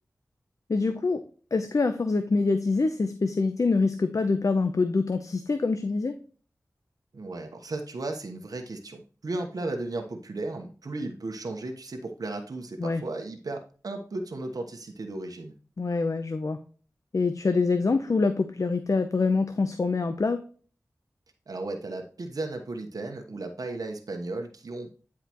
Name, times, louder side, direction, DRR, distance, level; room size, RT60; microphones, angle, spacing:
voice 1, 0.7-1.2 1.5-6.2 12.8-13.0 15.8-16.6 17.1-20.4, left 3 dB, 60° left, 8 dB, 0.7 m, -25 dB
voice 2, 7.1-15.5 21.5-24.9, right 2 dB, 75° right, 3 dB, 1.1 m, -35 dB
10.5 x 4.8 x 3.0 m, 0.39 s
wide cardioid pair, 60°, 6 cm